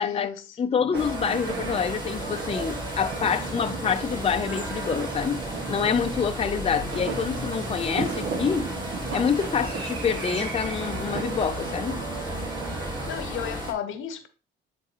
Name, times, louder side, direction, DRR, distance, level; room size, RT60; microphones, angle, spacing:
voice 1, 0.0-0.6 13.1-14.3, left 9 dB, 80° left, 0.9 m, -33 dB
voice 2, 0.6-8.7 9.1-12.0, left 7 dB, 30° left, 0.5 m, -27 dB
sound 1, 0.9-13.7, equal, 20° right, 2.3 m, -34 dB
sound 2, 0.9-13.2, right 5 dB, 70° right, 1.4 m, -35 dB
9.6 x 3.8 x 2.9 m
cardioid pair, 90°, 20 cm